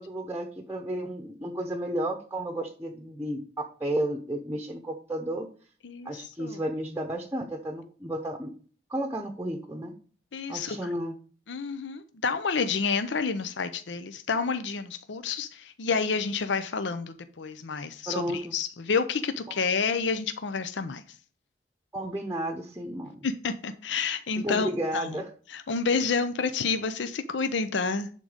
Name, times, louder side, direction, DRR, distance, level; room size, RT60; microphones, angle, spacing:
voice 1, 0.0-5.5 6.0-8.5 8.9-9.9 10.5-11.1 18.1-18.5 19.5-19.6 21.9-23.3 24.4-25.3, right 1 dB, 10° right, 0.8 m, -32 dB
voice 2, 5.8-6.6 10.3-10.8 11.5-21.0 23.2-24.7 24.9-25.1 25.5-28.1, left 5 dB, 80° left, 0.6 m, -29 dB
11.0 x 3.8 x 5.0 m
head